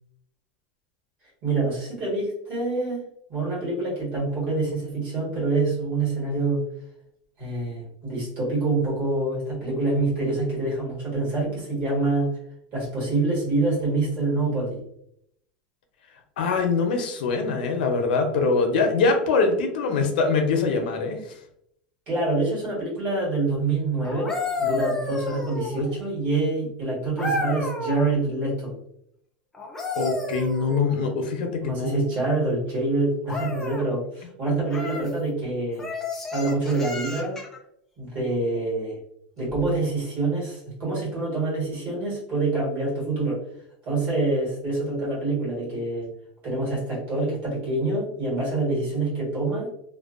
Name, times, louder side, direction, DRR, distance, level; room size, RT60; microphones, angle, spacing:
voice 1, 1.4-6.6 7.4-12.3 12.7-14.8 22.1-24.3 24.6-28.7 31.6-35.9 36.3-37.4 38.0-39.0 39.4-43.4 43.8-46.1 46.4-49.7, right 2 dB, 35° right, -6 dB, 1.3 m, -26 dB
voice 2, 16.4-21.2 30.0-32.0 34.5-34.6, left 4 dB, 85° left, 4 dB, 0.5 m, -23 dB
sound 1, 24.0-26.0 27.2-28.1 29.5-31.2 33.3-33.9 34.7-35.1 35.8-37.6 39.5-39.7, left 2 dB, 10° left, 0.3 m, -31 dB
2.5 x 2.2 x 2.4 m, 0.73 s
supercardioid pair, 180°, 5 cm